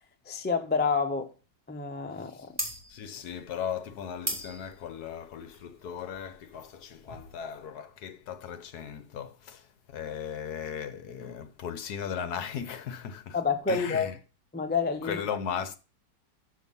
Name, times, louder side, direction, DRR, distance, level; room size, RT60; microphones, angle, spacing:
voice 1, 0.3-1.3 1.7-2.6 13.3-14.1 14.5-15.2, left 5 dB, 15° left, 0.4 m, -28 dB
voice 2, 2.1-13.4 13.7-14.2 15.0-15.8, left 8 dB, 65° left, 1.3 m, -37 dB
sound 1, 2.5-7.7, right 1 dB, 10° right, 2.0 m, -39 dB
6.8 x 6.4 x 5.4 m
omnidirectional pair, 1.9 m